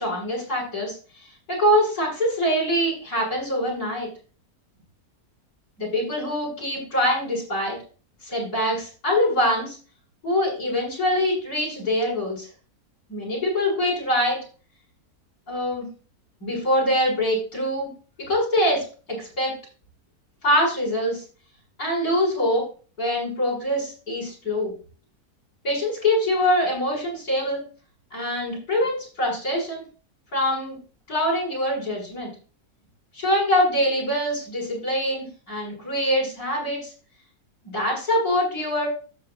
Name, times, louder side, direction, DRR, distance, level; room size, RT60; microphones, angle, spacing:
voice 1, 0.0-4.1 5.8-7.8 8.2-9.8 10.2-12.5 13.1-14.4 15.5-15.9 16.4-17.9 18.3-19.5 20.4-21.2 21.8-22.7 23.0-24.7 25.6-27.6 28.1-29.8 30.3-30.8 31.1-32.3 33.1-36.9 37.6-38.9, left 1 dB, 80° left, -4 dB, 7.4 m, -24 dB
13.5 x 8.8 x 2.6 m, 0.37 s
omnidirectional pair, 1.6 m